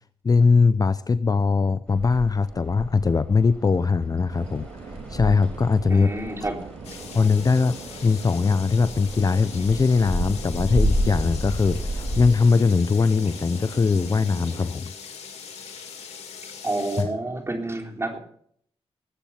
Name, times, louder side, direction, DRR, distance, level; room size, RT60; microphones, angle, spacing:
voice 1, 0.2-4.7 5.1-6.1 7.1-7.7 8.0-14.9 17.0-17.1, left 4 dB, 35° left, 14 dB, 0.6 m, -21 dB
sound 1, 1.9-12.3, equal, 10° left, 5.9 m, -31 dB
sound 2, 4.3-14.7, right 5 dB, 90° right, 4.1 m, -42 dB
voice 2, 5.9-6.6 16.6-18.2, right 2 dB, 25° right, 3 dB, 3.6 m, -29 dB
sound 3, 6.8-17.0, left 6 dB, 85° left, 2.7 m, -41 dB
19.5 x 8.4 x 5.8 m, 0.64 s
cardioid pair, 75°, 11 cm